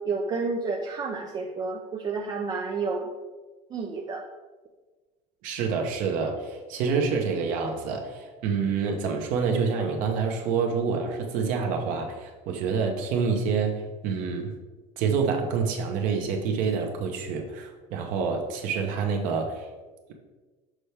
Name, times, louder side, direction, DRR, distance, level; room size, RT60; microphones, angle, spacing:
voice 1, 0.0-3.1 3.7-4.2, right 4 dB, 25° right, 2 dB, 0.4 m, -30 dB
voice 2, 5.4-14.5 15.0-19.7, right 5 dB, 55° right, 3 dB, 0.9 m, -27 dB
6.2 x 5.6 x 3.4 m, 1.3 s
cardioid pair, 155°, 16 cm